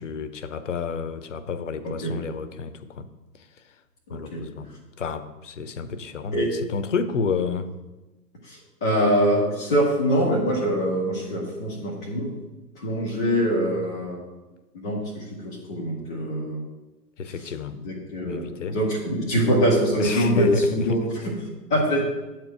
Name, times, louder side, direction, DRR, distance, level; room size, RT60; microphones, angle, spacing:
voice 1, 0.0-3.1 4.1-4.7 5.0-7.7 17.2-17.7 18.2-18.8 20.0-21.0, left 4 dB, 50° left, 12 dB, 0.8 m, -30 dB
voice 2, 1.8-2.2 4.1-4.5 6.3-6.5 8.4-12.3 12.7-14.2 14.8-16.6 17.4-17.5 17.8-22.0, equal, 5° left, -12 dB, 0.4 m, -24 dB
9.0 x 4.5 x 7.5 m, 1.1 s
figure-of-eight pair, 120°, 49 cm